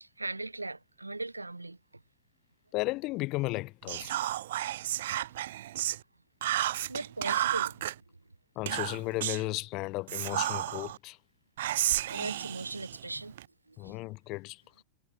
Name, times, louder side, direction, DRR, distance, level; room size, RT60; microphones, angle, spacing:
voice 1, 0.0-2.0 5.0-5.1 6.5-6.6 6.9-7.9 12.1-13.4 13.7-14.0, right 2 dB, 85° right, 1.1 m, -39 dB
voice 2, 2.7-4.1 8.5-11.2 13.8-14.8, left 21 dB, 40° left, 1.1 m, -34 dB
Whispering, 3.9-6.0 6.4-7.9 8.7-9.5 10.1-11.0 11.6-13.5, right 13 dB, 55° right, 0.6 m, -32 dB
figure-of-eight pair, 90°, 0 cm